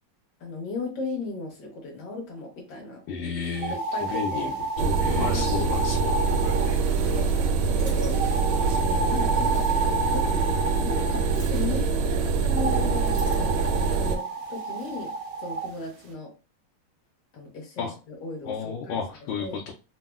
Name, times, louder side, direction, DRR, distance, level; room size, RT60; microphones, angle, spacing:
voice 1, 0.4-3.0 3.7-4.5 5.1-5.4 7.1-7.3 7.6-8.3 8.8-10.4 10.8-16.3 17.3-19.0 19.4-19.6, left 3 dB, 60° left, 0 dB, 1.5 m, -36 dB
voice 2, 3.1-3.8 4.1-6.2 17.8-17.9 18.4-19.7, left 5 dB, 85° left, -1 dB, 1.4 m, -32 dB
sound 1, 3.6-7.5 8.1-11.4 12.5-15.7, right 3 dB, 70° right, 0.8 m, -31 dB
sound 2, 3.9-4.0 4.5-4.6 5.1-9.9 11.3-12.2 12.9-13.7 14.4-15.2, right 1 dB, 25° right, 0.5 m, -43 dB
sound 3, 4.8-14.2, right 4 dB, 85° right, 1.4 m, -24 dB
3.5 x 2.0 x 2.2 m, 0.32 s
omnidirectional pair, 2.1 m